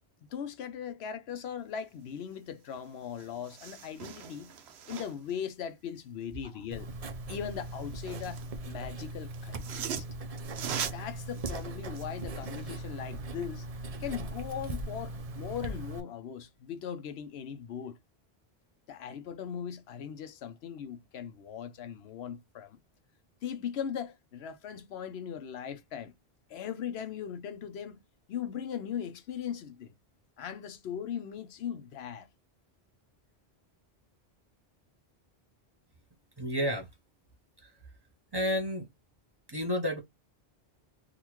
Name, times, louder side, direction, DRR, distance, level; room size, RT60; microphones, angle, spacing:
voice 1, 0.3-4.5 4.9-6.9 7.3-10.0 10.9-13.7 14.0-18.0 18.9-22.8 23.4-26.1 26.5-28.0 28.3-29.9 30.4-32.3, left 8 dB, 80° left, 0.9 m, -39 dB
sound 1, 2.7-2.8 3.1-5.3 7.5-8.5 9.3-12.7 13.1-13.2, right 8 dB, 85° right, 0.9 m, -41 dB
Writing, 6.7-16.0, right 2 dB, 45° right, 0.6 m, -39 dB
voice 2, 36.4-36.9 37.6-37.7 38.3-38.9 39.5-40.0, equal, 25° right, 1.0 m, -30 dB
3.7 x 2.5 x 2.9 m
omnidirectional pair, 1.1 m